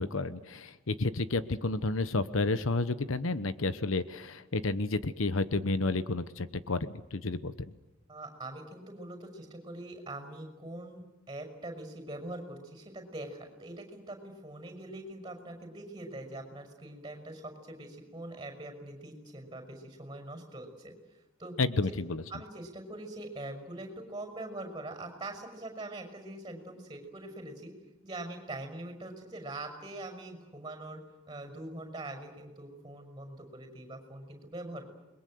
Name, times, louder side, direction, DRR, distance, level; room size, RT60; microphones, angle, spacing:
voice 1, 0.0-7.7 21.6-22.2, left 3 dB, 75° left, 13 dB, 1.0 m, -31 dB
voice 2, 8.1-20.9 21.4-21.5 22.3-27.7 28.0-31.0 31.3-34.9, right 2 dB, 20° right, 5 dB, 5.9 m, -43 dB
28.5 x 22.0 x 7.9 m, 1.0 s
head